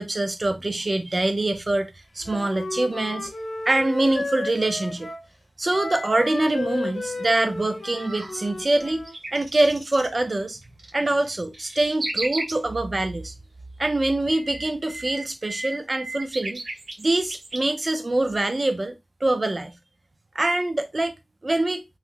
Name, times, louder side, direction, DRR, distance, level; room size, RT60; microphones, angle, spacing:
voice 1, 0.0-1.9 2.1-3.3 3.7-5.1 5.6-10.6 10.9-13.3 13.8-16.6 17.0-19.0 19.2-19.7 20.3-21.1 21.4-21.8, right 2 dB, 35° right, 0.5 m, -24 dB
Wind instrument woodwind instrument, 2.2-5.2 5.7-9.2, left 2 dB, 55° left, 0.9 m, -33 dB
sound 1, 8.8-10.1 10.6-12.6 14.1-17.6, right 2 dB, 85° right, 0.7 m, -34 dB
3.0 x 2.1 x 3.7 m
wide cardioid pair, 90°, 0 cm